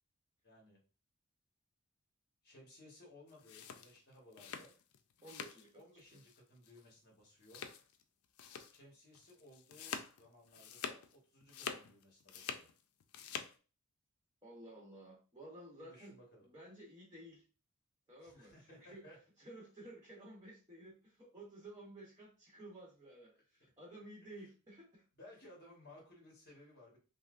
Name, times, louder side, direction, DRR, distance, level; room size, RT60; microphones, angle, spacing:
voice 1, 0.4-0.8 2.4-4.7 5.7-7.7 8.7-12.7 15.8-16.5 18.2-19.2 23.6-24.0 25.2-27.0, left 1 dB, 50° left, -2 dB, 1.2 m, -60 dB
sound 1, 3.3-5.7 6.0-6.4 6.6-6.8 7.4-8.0 8.4-8.8 9.1-11.1 11.4-12.7 13.0-13.5, left 7 dB, 90° left, 0.4 m, -46 dB
voice 2, 5.2-5.8 6.1-6.2 14.4-17.4 18.1-19.0 19.4-25.0, right 1 dB, 20° right, -3 dB, 0.9 m, -54 dB
5.4 x 2.0 x 2.4 m, 0.34 s
head